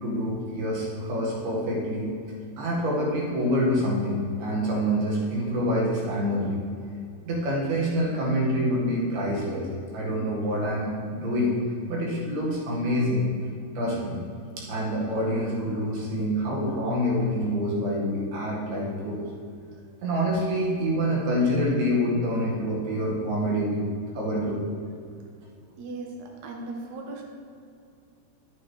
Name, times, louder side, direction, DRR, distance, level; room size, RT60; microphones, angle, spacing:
voice 1, 0.0-6.6 7.2-9.7 9.9-11.6 11.9-13.3 13.8-14.2 14.6-19.3 20.0-23.8 24.2-24.6, equal, 70° right, -4 dB, 3.6 m, -26 dB
voice 2, 25.8-27.2, right 3 dB, 90° right, 1 dB, 1.5 m, -37 dB
11.5 x 8.6 x 3.3 m, 2.5 s
omnidirectional pair, 4.9 m